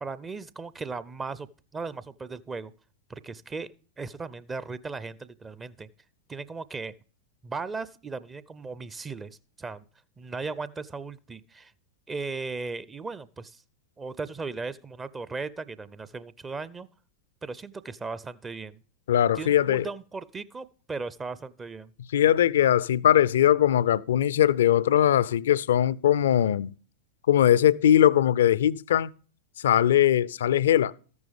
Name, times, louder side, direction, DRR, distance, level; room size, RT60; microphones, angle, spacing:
voice 1, 0.0-2.7 3.1-3.7 4.0-5.9 6.3-6.9 7.4-9.8 10.2-11.7 12.1-13.6 14.0-16.9 17.4-18.8 19.3-21.9, right 4 dB, 15° right, 0.5 m, -37 dB
voice 2, 19.1-19.8 22.1-26.7 27.3-29.1 29.6-30.9, left 11 dB, 60° left, 0.4 m, -21 dB
13.5 x 9.5 x 3.4 m
figure-of-eight pair, 90°, 0 cm